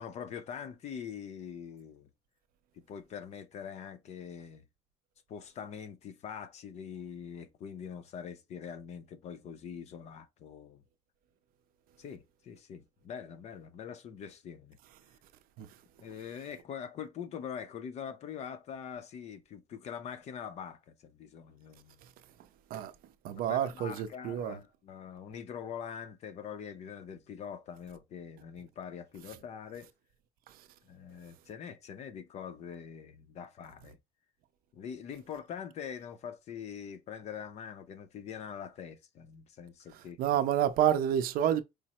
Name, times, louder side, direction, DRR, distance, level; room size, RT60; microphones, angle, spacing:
voice 1, 0.0-2.1 2.7-4.6 5.3-10.8 12.0-14.8 16.0-22.0 23.5-29.9 30.8-34.0 34.7-40.2, left 7 dB, 40° left, 0.5 m, -43 dB
voice 2, 23.2-24.6 40.2-41.6, right 10 dB, 60° right, 0.5 m, -28 dB
5.0 x 2.0 x 4.1 m
cardioid pair, 175°, 17 cm